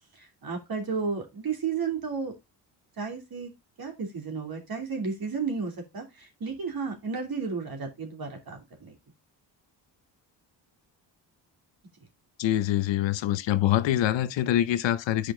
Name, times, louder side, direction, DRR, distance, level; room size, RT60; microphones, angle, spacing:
voice 1, 0.1-2.3 3.0-3.5 3.8-8.9, right 5 dB, 50° right, 2.9 m, -33 dB
voice 2, 12.4-15.3, left 12 dB, 75° left, 0.8 m, -25 dB
6.8 x 5.0 x 3.7 m
cardioid pair, 75°, 45 cm